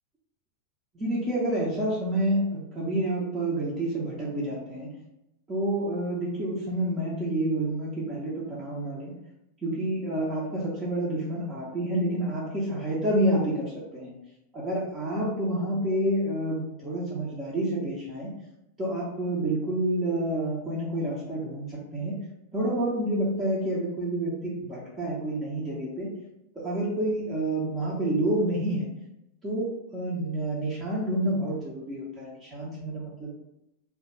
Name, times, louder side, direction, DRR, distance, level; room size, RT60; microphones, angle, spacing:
voice 1, 0.9-4.9 5.5-9.1 9.6-14.1 14.5-18.3 18.8-22.2 22.5-26.1 26.6-28.9 29.4-33.3, right 1 dB, 20° right, -6 dB, 0.6 m, -29 dB
2.2 x 2.2 x 2.8 m, 0.88 s
figure-of-eight pair, 90°, 0 cm